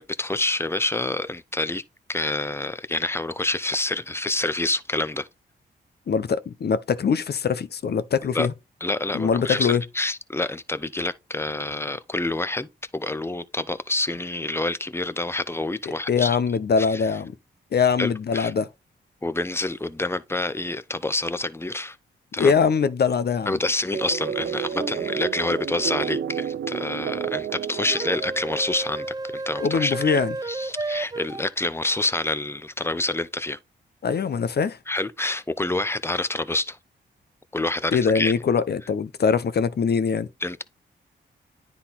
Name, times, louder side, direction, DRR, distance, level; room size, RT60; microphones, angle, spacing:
voice 1, 0.0-1.8 2.1-5.3 8.3-8.5 8.8-16.4 16.8-17.0 18.0-18.5 19.2-22.0 22.3-22.5 23.5-29.1 29.3-30.2 30.5-33.6 34.9-36.8 37.5-38.3 40.4-40.6, left 2 dB, 10° left, 0.8 m, -27 dB
voice 2, 6.1-8.5 9.1-9.8 15.9-17.3 17.7-18.7 22.4-23.6 29.6-30.4 34.0-34.8 37.9-40.3, left 6 dB, 55° left, 0.7 m, -22 dB
sound 1, 23.9-29.1, right 8 dB, 70° right, 0.7 m, -31 dB
sound 2, 24.7-25.0 27.9-31.5, right 2 dB, 20° right, 0.6 m, -32 dB
9.7 x 4.0 x 4.1 m
cardioid pair, 65°, 20 cm